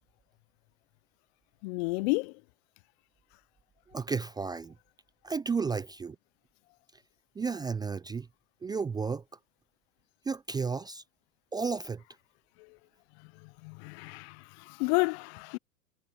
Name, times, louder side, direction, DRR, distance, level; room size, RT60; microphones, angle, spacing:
voice 1, 1.6-2.4 12.6-12.8 13.4-15.6, left 27 dB, 50° left, 0.8 m, -31 dB
voice 2, 3.9-4.7 5.2-6.2 7.4-8.3 8.6-9.2 10.3-11.0 11.5-12.0, right 5 dB, 10° right, 0.5 m, -32 dB
hypercardioid pair, 105°, 42 cm